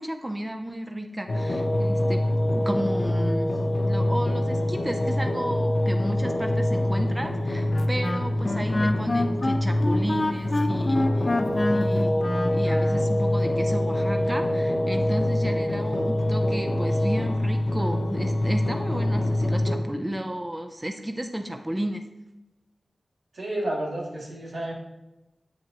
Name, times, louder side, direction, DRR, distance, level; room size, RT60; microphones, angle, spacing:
voice 1, 0.0-3.6 3.8-11.3 11.7-12.1 12.5-22.0, right 1 dB, 20° right, 5 dB, 0.7 m, -33 dB
sound 1, 1.3-19.8, left 1 dB, 70° left, 0.9 m, -25 dB
Wind instrument woodwind instrument, 7.7-13.1, left 2 dB, 45° left, 0.8 m, -27 dB
voice 2, 23.3-24.7, right 1 dB, 90° right, -5 dB, 2.4 m, -31 dB
8.5 x 7.6 x 3.0 m, 0.95 s
cardioid pair, 45°, 0 cm